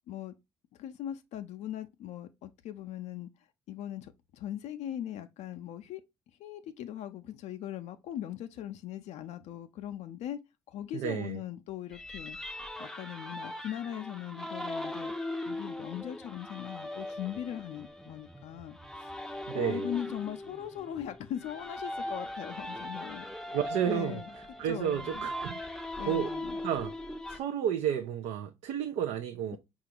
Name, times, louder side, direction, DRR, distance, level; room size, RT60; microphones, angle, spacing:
voice 1, 0.8-3.3 3.7-6.0 6.4-10.4 10.7-12.4 12.8-15.1 15.5-23.3 23.9-24.3 24.6-25.2 26.0-26.6, left 11 dB, 70° left, 0.4 m, -40 dB
voice 2, 10.9-11.4 19.5-19.9 23.5-24.2 24.6-25.6 26.1-26.3 26.6-26.9 27.3-29.6, right 9 dB, 75° right, 0.4 m, -31 dB
sound 1, 11.9-27.4, left 1 dB, 5° left, 0.5 m, -40 dB
5.0 x 2.4 x 2.8 m
hypercardioid pair, 55°, 12 cm